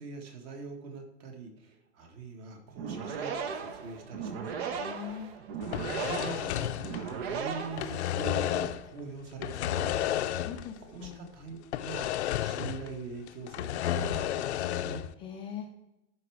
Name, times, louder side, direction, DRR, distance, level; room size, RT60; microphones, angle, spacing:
voice 1, 0.0-5.4 5.7-15.0, right 4 dB, 40° right, 4 dB, 1.7 m, -43 dB
sound 1, 2.7-8.4, right 6 dB, 70° right, 1.3 m, -37 dB
voice 2, 4.8-5.3 10.4-11.2 15.2-15.7, left 9 dB, 15° left, 1 dB, 0.4 m, -41 dB
sound 2, 5.6-7.4 7.6-8.9 9.4-10.8 11.0-11.1 11.7-13.0 13.3-15.1, left 11 dB, 90° left, 0.6 m, -32 dB
11.5 x 4.7 x 4.7 m, 0.93 s
supercardioid pair, 160°, 33 cm